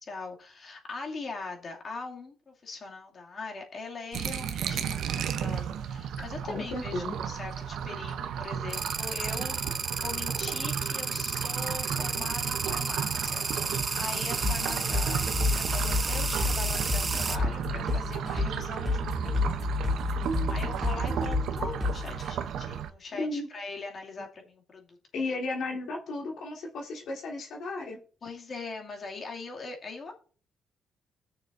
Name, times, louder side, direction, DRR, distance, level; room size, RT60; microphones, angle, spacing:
voice 1, 0.0-9.7 10.0-19.5 20.5-25.4 28.2-30.1, left 3 dB, 45° left, 1 dB, 2.3 m, -41 dB
sound 1, 4.1-22.9, right 8 dB, 75° right, 0.7 m, -34 dB
voice 2, 6.5-7.1 23.1-23.5 25.1-28.0, left 2 dB, 75° left, -1 dB, 1.8 m, -34 dB
sound 2, 8.7-17.4, right 4 dB, 30° right, 0.6 m, -32 dB
sound 3, 14.4-22.3, left 3 dB, 5° left, 2.1 m, -30 dB
17.5 x 6.6 x 2.6 m, 0.41 s
cardioid pair, 90°, 0 cm